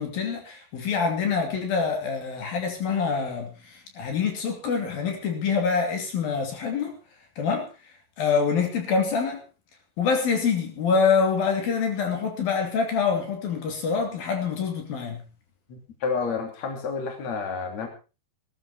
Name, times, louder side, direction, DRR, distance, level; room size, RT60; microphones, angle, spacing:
voice 1, 0.0-6.9 7.4-7.7 8.2-9.4 10.0-15.2, left 5 dB, 70° left, 4 dB, 4.5 m, -25 dB
voice 2, 15.7-17.9, left 5 dB, 45° left, 4 dB, 4.1 m, -30 dB
19.0 x 13.5 x 4.2 m, 0.32 s
omnidirectional pair, 4.4 m